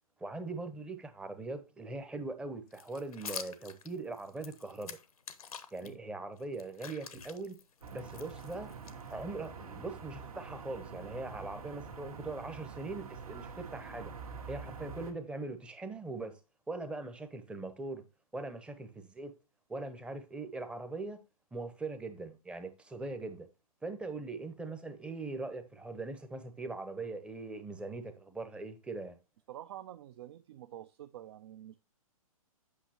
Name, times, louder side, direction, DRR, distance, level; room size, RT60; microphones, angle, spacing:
voice 1, 0.2-5.0 5.7-7.6 7.9-8.7 9.1-14.1 14.5-16.4 16.7-18.0 18.3-19.3 19.7-21.2 21.5-23.5 23.8-29.2, right 3 dB, 5° right, 0.7 m, -41 dB
sound 1, 2.7-5.9 6.4-9.5, left 7 dB, 75° left, 0.9 m, -47 dB
sound 2, 7.8-15.1, right 5 dB, 70° right, 1.6 m, -46 dB
voice 2, 29.5-31.8, right 12 dB, 45° right, 0.4 m, -48 dB
8.3 x 5.7 x 2.9 m
hypercardioid pair, 125°, 19 cm